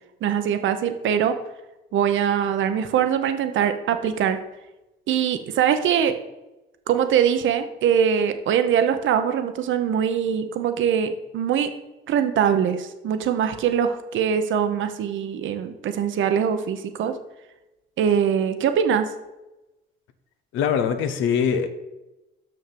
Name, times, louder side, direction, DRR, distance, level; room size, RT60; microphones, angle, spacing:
voice 1, 0.2-1.4 1.9-4.4 5.1-6.2 6.9-11.7 12.1-17.2 18.0-19.1, right 8 dB, 75° right, 8 dB, 0.9 m, -22 dB
voice 2, 20.5-21.7, left 7 dB, 90° left, 9 dB, 0.9 m, -22 dB
6.3 x 6.1 x 6.9 m, 1.0 s
cardioid pair, 90°, 20 cm